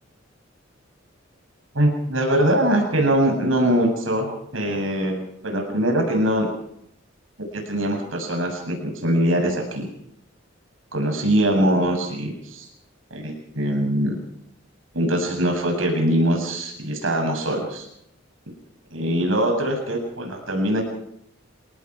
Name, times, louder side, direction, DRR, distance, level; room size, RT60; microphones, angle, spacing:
voice 1, 1.7-6.5 7.7-9.9 10.9-12.7 13.1-14.1 14.9-17.9 18.9-20.8, right 1 dB, 85° right, 2 dB, 7.5 m, -22 dB
30.0 x 18.5 x 4.8 m, 0.74 s
head